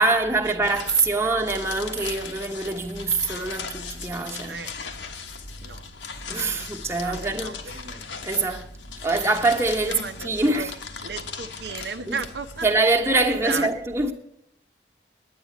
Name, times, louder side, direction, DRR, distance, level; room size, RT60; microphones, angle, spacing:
voice 1, 0.0-4.6 6.3-7.5 7.8-7.9 8.2-8.7 9.0-9.9 10.2-10.7 12.1-12.2 12.6-14.1, right 3 dB, 15° right, 1.2 m, -24 dB
sound 1, 0.6-12.8, left 5 dB, 85° left, 1.5 m, -38 dB
voice 2, 0.7-1.5 4.5-4.8 5.6-5.9 6.5-8.0 8.5-8.7 9.8-10.7 11.0-12.7 13.2-13.7, right 4 dB, 65° right, 0.8 m, -36 dB
10.5 x 9.5 x 9.5 m
head